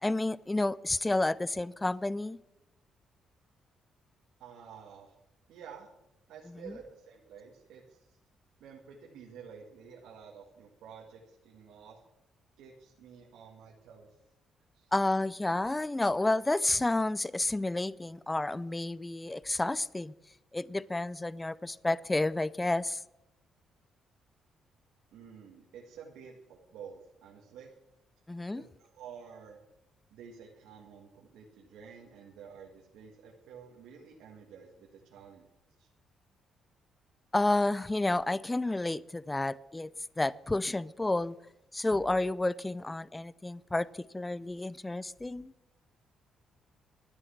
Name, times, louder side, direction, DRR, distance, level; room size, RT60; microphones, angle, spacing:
voice 1, 0.0-2.4 14.9-20.1 20.5-23.0 28.3-28.6 37.3-39.9 40.2-41.4 41.7-45.5, left 2 dB, 15° left, 20 dB, 0.4 m, -30 dB
voice 2, 4.4-5.2 5.5-5.9 6.3-8.2 8.6-12.0 12.6-14.2 14.7-14.9 25.1-27.7 28.6-29.6 30.1-35.5 35.8-35.9, right 7 dB, 85° right, 0 dB, 2.1 m, -50 dB
12.5 x 9.8 x 7.3 m, 0.90 s
cardioid pair, 90°, 0 cm